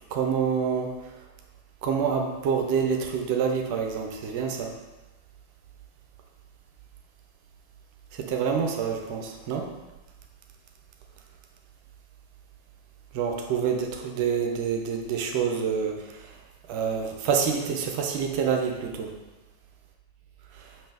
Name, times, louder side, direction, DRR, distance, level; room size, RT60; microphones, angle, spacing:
voice 1, 0.1-1.0 1.8-4.7 8.1-9.7 13.1-16.4 16.7-19.1 20.5-20.7, right 6 dB, 45° right, 3 dB, 0.6 m, -27 dB
5.3 x 2.7 x 3.4 m, 1.1 s
figure-of-eight pair, 90°, 0 cm